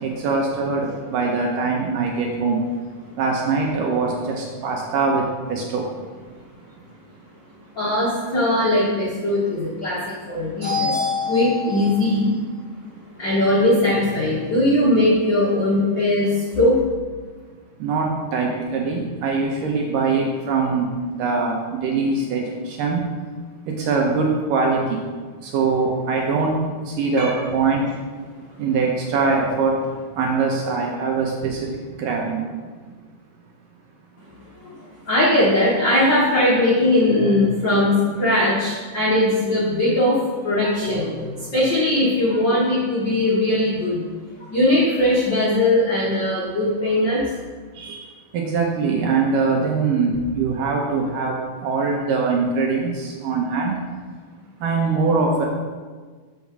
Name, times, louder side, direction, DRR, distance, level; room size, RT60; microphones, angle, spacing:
voice 1, 0.0-2.6 3.2-5.9 17.8-23.0 23.7-25.0 25.4-27.9 28.6-29.8 30.2-32.6 47.7-53.8 54.6-55.5, right 4 dB, 75° right, 0 dB, 2.1 m, -22 dB
voice 2, 7.8-12.3 13.2-16.8 27.2-27.3 34.6-34.7 35.1-44.0 44.5-47.2, left 1 dB, 70° left, -6 dB, 1.1 m, -20 dB
7.5 x 5.5 x 6.0 m, 1.5 s
omnidirectional pair, 4.6 m